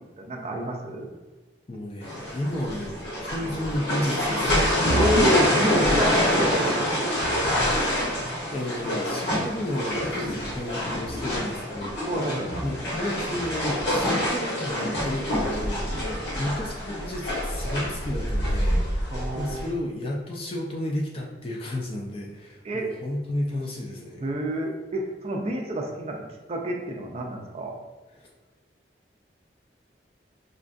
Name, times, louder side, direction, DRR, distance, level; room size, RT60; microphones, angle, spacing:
voice 1, 0.2-1.1 4.9-7.2 12.1-12.6 15.9-16.3 19.1-19.7 22.6-22.9 24.2-26.2 26.5-27.8, right 1 dB, 35° right, 2 dB, 0.4 m, -29 dB
voice 2, 1.7-4.9 7.6-8.0 8.5-12.1 12.6-19.0 19.3-24.3, left 1 dB, 30° left, -1 dB, 0.4 m, -32 dB
sound 1, 2.0-19.7, equal, 80° left, 1.3 m, -26 dB
5.1 x 2.3 x 2.5 m, 1.2 s
head